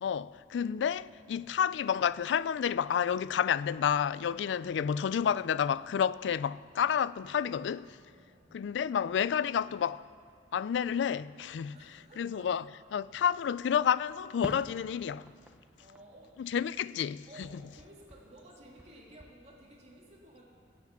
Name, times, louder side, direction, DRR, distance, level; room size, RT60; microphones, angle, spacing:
voice 1, 0.0-8.0 8.5-10.0 10.5-11.8 12.2-12.6 12.9-15.3 16.4-17.3, left 8 dB, 80° left, 0.3 m, -30 dB
voice 2, 8.1-8.6 11.7-12.7 15.8-16.3 17.3-20.4, right 1 dB, 40° right, 2.5 m, -55 dB
Fireworks, 14.4-17.1 17.4-19.3, equal, 5° right, 0.5 m, -48 dB
21.0 x 8.2 x 5.8 m
head